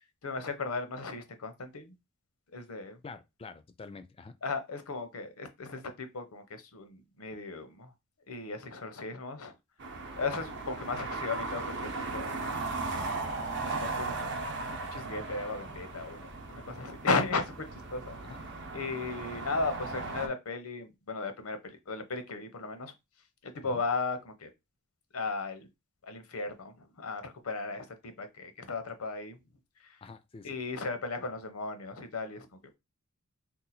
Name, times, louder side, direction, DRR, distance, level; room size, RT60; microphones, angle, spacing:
voice 1, 0.2-1.9 2.5-3.0 4.4-7.9 8.3-9.5 10.2-12.7 13.6-14.2 14.7-18.2 18.7-22.9 23.4-24.5 25.1-25.7 26.0-27.9 28.2-29.4 30.4-32.5, left 3 dB, 90° left, 0.7 m, -36 dB
voice 2, 3.0-4.4 10.3-10.5 18.2-18.4 23.6-23.8 30.0-30.6, left 4 dB, 25° left, 0.3 m, -47 dB
sound 1, 9.8-20.3, right 3 dB, 55° right, 0.7 m, -37 dB
2.7 x 2.2 x 4.1 m
head